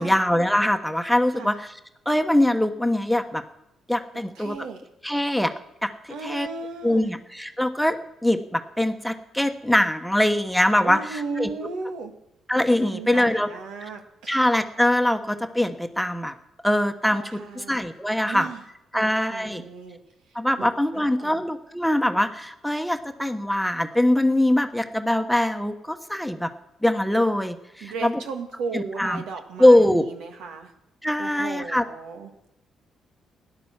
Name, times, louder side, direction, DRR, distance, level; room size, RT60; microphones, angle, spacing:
voice 1, 0.0-1.7 2.0-3.4 3.9-4.6 5.0-5.5 5.8-6.5 6.8-8.0 8.2-11.5 12.5-13.5 14.3-16.3 16.6-18.5 18.9-19.6 20.3-26.5 26.8-28.2 28.7-29.2 29.6-30.0 31.0-31.8, left 1 dB, ahead, 7 dB, 1.2 m, -22 dB
voice 2, 4.1-4.8 6.1-7.1 10.8-12.1 12.7-14.4 17.1-17.9 18.3-18.6 18.9-20.0 20.6-20.7 20.9-21.4 27.8-30.7 31.2-32.5, right 4 dB, 85° right, 5 dB, 2.0 m, -36 dB
16.0 x 11.0 x 7.4 m, 0.88 s
cardioid pair, 90°, 0 cm